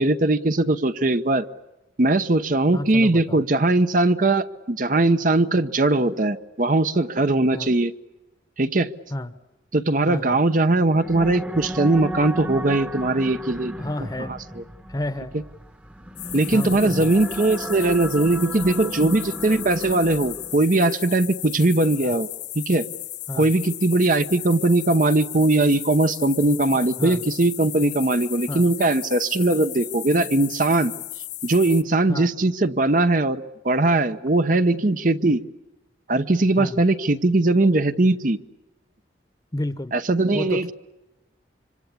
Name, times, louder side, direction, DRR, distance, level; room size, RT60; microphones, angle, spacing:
voice 1, 0.0-1.4 2.0-7.9 8.6-8.9 9.7-13.7 16.3-22.3 22.5-22.8 23.4-30.9 31.4-35.4 36.1-38.4 39.9-40.7, right 2 dB, 45° right, 11 dB, 0.9 m, -20 dB
voice 2, 2.7-3.4 7.5-7.7 9.1-9.4 10.1-10.4 13.8-14.4 14.9-15.3 16.5-17.1 22.0-22.2 23.3-23.5 27.0-27.2 28.5-28.7 32.1-32.3 36.6-36.8 39.5-40.0 40.3-40.7, left 1 dB, 20° left, 13 dB, 1.0 m, -31 dB
sound 1, 10.8-20.7, equal, 5° right, 1.0 m, -34 dB
sound 2, 16.2-31.8, left 16 dB, 75° left, 1.1 m, -35 dB
25.5 x 25.5 x 8.4 m, 1.0 s
head